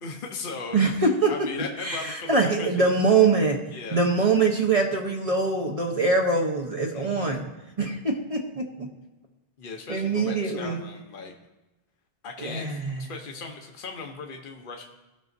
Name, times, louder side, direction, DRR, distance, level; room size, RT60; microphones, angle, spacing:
voice 1, 0.0-0.8 1.3-2.8 3.7-4.0 6.9-7.5 9.6-11.3 12.2-14.8, left 4 dB, 60° left, 2 dB, 1.0 m, -38 dB
voice 2, 0.7-1.3 1.8-3.6 3.9-7.4 7.8-8.9 9.9-10.8 12.4-13.0, right 4 dB, 35° right, 1 dB, 1.0 m, -23 dB
16.0 x 6.2 x 2.7 m, 1.0 s
omnidirectional pair, 1.0 m